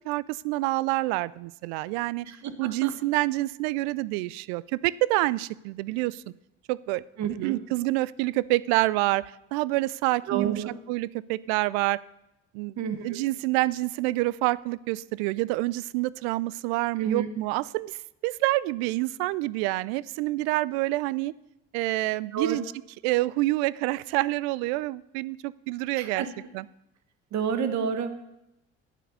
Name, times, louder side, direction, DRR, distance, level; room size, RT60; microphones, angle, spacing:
voice 1, 0.1-2.3 2.6-6.2 6.7-7.0 7.4-10.6 10.9-12.0 12.5-12.8 13.0-18.0 18.2-21.3 21.7-22.7 23.0-26.2 26.5-26.7, right 19 dB, 80° right, 21 dB, 0.5 m, -27 dB
voice 2, 2.2-2.9 7.2-7.6 10.3-10.7 12.8-13.3 17.0-17.3 22.3-22.6 26.0-26.3 27.3-28.2, right 7 dB, 60° right, 10 dB, 1.4 m, -30 dB
9.2 x 9.1 x 6.8 m, 0.88 s
hypercardioid pair, 60°, 31 cm